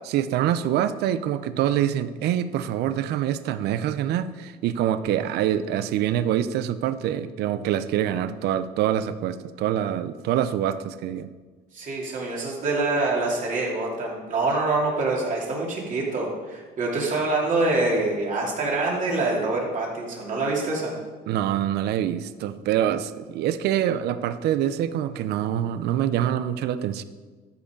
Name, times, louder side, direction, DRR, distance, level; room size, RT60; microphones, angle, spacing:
voice 1, 0.1-11.3 21.3-27.0, right 11 dB, 75° right, 13 dB, 0.6 m, -25 dB
voice 2, 11.7-20.9, right 2 dB, 50° right, -3 dB, 2.9 m, -25 dB
13.0 x 5.5 x 5.2 m, 1.4 s
cardioid pair, 110°, 17 cm